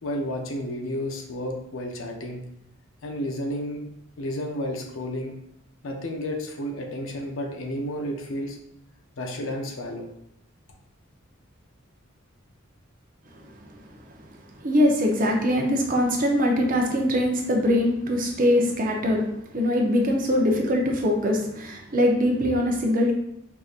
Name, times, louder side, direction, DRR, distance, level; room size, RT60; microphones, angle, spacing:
voice 1, 0.0-2.4 3.0-3.8 4.2-5.3 5.8-8.6 9.2-10.1, equal, 70° left, 2 dB, 0.6 m, -31 dB
voice 2, 13.3-13.9 14.5-23.1, left 1 dB, 40° right, 0 dB, 0.6 m, -23 dB
4.8 x 2.6 x 2.4 m, 0.78 s
head